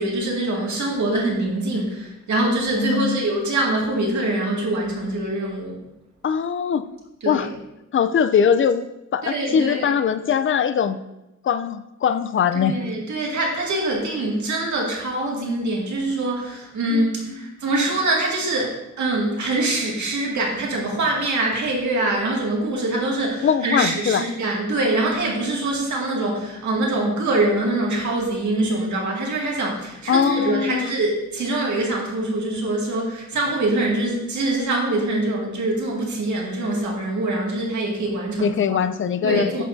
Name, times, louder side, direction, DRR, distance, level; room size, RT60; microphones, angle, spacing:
voice 1, 0.0-5.8 7.2-7.5 9.2-9.9 12.5-38.8 39.2-39.6, right 2 dB, 75° right, -2 dB, 2.2 m, -24 dB
voice 2, 2.8-3.3 6.2-6.8 7.3-7.5 7.9-8.8 9.1-11.0 11.4-12.8 16.9-17.2 17.4-17.6 23.4-24.2 30.1-30.9 38.4-39.6, left 7 dB, 45° left, 12 dB, 0.5 m, -21 dB
10.5 x 7.0 x 2.7 m, 0.93 s
wide cardioid pair, 155°, 29 cm